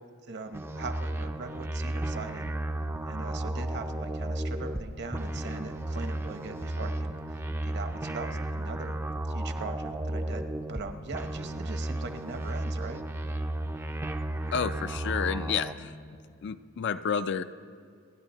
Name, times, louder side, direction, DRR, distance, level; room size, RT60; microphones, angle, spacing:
voice 1, 0.0-2.5 3.1-9.0 9.3-13.0, right 3 dB, 55° right, 7 dB, 0.9 m, -41 dB
sound 1, 0.5-4.8 5.1-10.8 11.1-15.7, right 1 dB, 10° right, 0.4 m, -33 dB
voice 2, 14.5-15.9 16.4-17.4, left 6 dB, 55° left, 12 dB, 0.4 m, -30 dB
30.0 x 10.5 x 3.0 m, 2.3 s
head